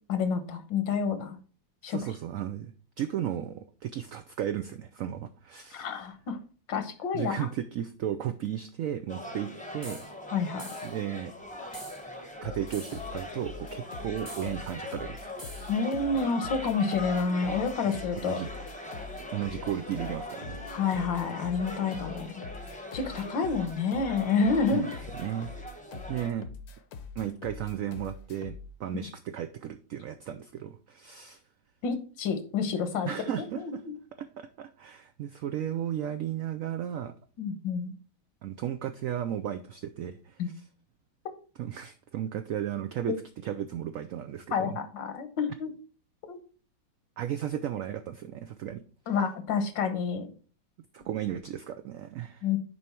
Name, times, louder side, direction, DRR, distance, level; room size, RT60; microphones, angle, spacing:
voice 1, 0.1-1.4 1.8-2.0 5.7-6.4 6.7-7.5 10.3-10.7 15.7-18.4 20.7-22.5 22.9-24.9 31.8-33.3 33.6-33.9 37.4-37.9 40.4-40.5 43.1-43.2 44.5-45.7 46.2-46.4 49.1-50.3 52.4-52.6, left 5 dB, 85° left, 9 dB, 1.7 m, -29 dB
voice 2, 1.8-6.1 7.1-10.0 10.8-11.3 12.4-15.7 18.2-18.5 19.2-20.6 24.7-25.5 26.1-26.5 27.2-31.4 33.0-33.8 34.2-37.1 38.4-40.4 41.6-43.1 43.4-44.8 47.2-48.8 50.9-52.5, right 10 dB, 90° right, 10 dB, 0.7 m, -35 dB
sound 1, 9.1-26.3, left 1 dB, 5° left, 0.7 m, -41 dB
sound 2, 9.8-10.1 10.6-11.0 11.7-12.0 12.7-13.1 14.3-14.5 15.4-15.7, right 1 dB, 15° right, 1.0 m, -45 dB
sound 3, 12.4-28.7, left 5 dB, 65° left, 1.1 m, -44 dB
6.9 x 4.8 x 4.4 m, 0.39 s
omnidirectional pair, 2.0 m